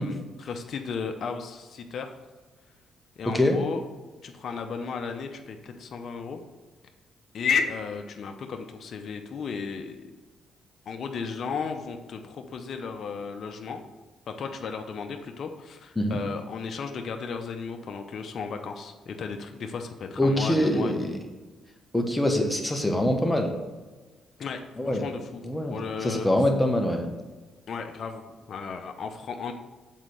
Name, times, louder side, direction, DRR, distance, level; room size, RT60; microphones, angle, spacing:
voice 1, 0.0-2.1 3.2-3.8 4.2-6.4 7.3-10.0 10.9-13.8 14.3-20.9 24.4-25.4 25.7-26.3 27.7-29.5, left 5 dB, 60° left, 5 dB, 0.7 m, -34 dB
voice 2, 3.3-3.6 16.0-16.2 20.2-21.1 21.9-23.5 24.8-25.0 25.4-27.1, left 1 dB, 10° left, 3 dB, 1.3 m, -24 dB
7.4 x 4.1 x 6.3 m, 1.3 s
cardioid pair, 90°, 0 cm